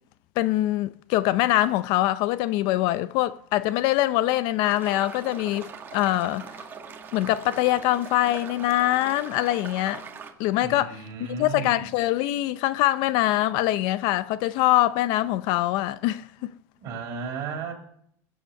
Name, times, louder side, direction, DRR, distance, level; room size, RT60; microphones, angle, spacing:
voice 1, 0.4-6.5 7.1-10.0 10.4-10.9 11.4-16.5, left 15 dB, 55° left, 0.5 m, -23 dB
sound 1, 4.7-10.3, right 6 dB, 25° right, 1.8 m, -41 dB
voice 2, 10.6-11.9 16.8-17.7, right 5 dB, 40° right, 4.0 m, -34 dB
21.0 x 7.9 x 6.6 m
supercardioid pair, 155°, 9 cm